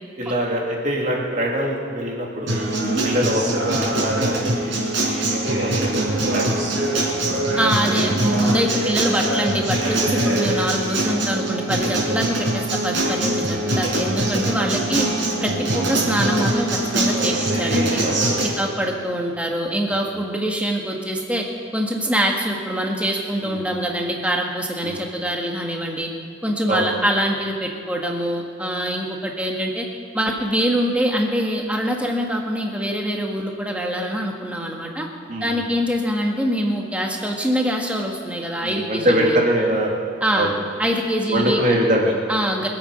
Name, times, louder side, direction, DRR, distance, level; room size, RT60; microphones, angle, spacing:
voice 1, 0.2-2.5 3.0-7.6 10.2-10.4 17.1-17.3 18.0-18.2 18.5-18.7 23.4-23.8 24.8-25.0 26.7-26.8 35.3-35.7 38.6-40.0 40.4-40.5 41.3-42.2, equal, 40° right, -2 dB, 2.8 m, -24 dB
Acoustic guitar, 2.5-18.5, right 1 dB, 80° right, 4.9 m, -22 dB
voice 2, 7.6-15.1 15.4-18.0 18.4-21.4 21.7-26.1 26.4-29.8 30.1-35.1 35.4-39.4 40.2-40.5 40.8-41.6 42.3-42.7, equal, 5° right, 0 dB, 1.6 m, -24 dB
24.5 x 8.6 x 5.5 m, 2.3 s
head